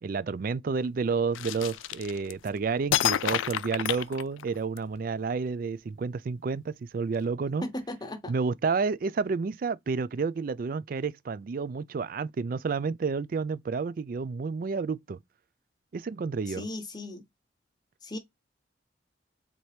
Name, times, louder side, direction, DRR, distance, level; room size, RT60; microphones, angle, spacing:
voice 1, 0.0-7.7 8.3-15.2 15.9-16.6, right 5 dB, 45° right, 0.3 m, -30 dB
sound 1, 1.3-2.5 2.9-4.8, left 11 dB, 80° left, 0.3 m, -29 dB
voice 2, 7.6-8.3 16.6-17.2 18.0-18.2, left 1 dB, 20° left, 1.0 m, -36 dB
4.3 x 2.8 x 3.2 m
head